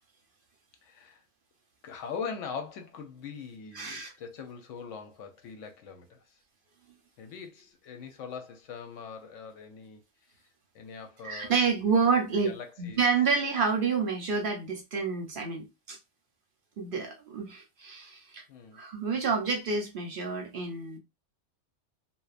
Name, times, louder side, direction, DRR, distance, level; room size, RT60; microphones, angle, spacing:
voice 1, 0.8-1.2 1.8-6.4 7.2-10.0 10.7-11.6 12.4-13.0 18.5-18.8 19.1-19.3, left 6 dB, 85° left, 1.0 m, -42 dB
voice 2, 3.7-4.1 11.2-16.0 16.8-18.4 18.7-21.0, right 5 dB, 55° right, 0.7 m, -29 dB
2.7 x 2.1 x 2.4 m
omnidirectional pair, 1.3 m